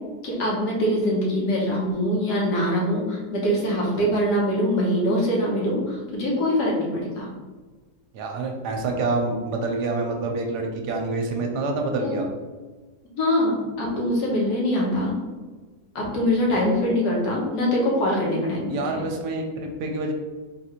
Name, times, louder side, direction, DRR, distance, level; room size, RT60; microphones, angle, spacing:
voice 1, 0.2-7.3 12.0-12.2 13.2-15.1 15.9-19.0, equal, 70° left, -3 dB, 1.6 m, -23 dB
voice 2, 8.1-12.3 18.7-20.1, right 3 dB, 75° right, 2 dB, 1.1 m, -27 dB
3.8 x 2.5 x 4.2 m, 1.3 s
omnidirectional pair, 1.9 m